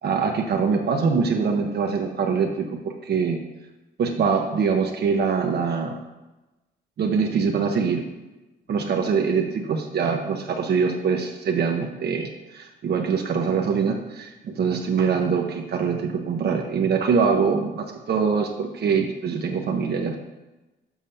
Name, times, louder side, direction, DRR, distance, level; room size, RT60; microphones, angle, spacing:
voice 1, 0.0-3.4 4.0-6.0 7.0-8.0 8.7-20.2, right 5 dB, 55° right, 3 dB, 0.8 m, -23 dB
7.2 x 4.9 x 5.6 m, 1.1 s
cardioid pair, 125°, 19 cm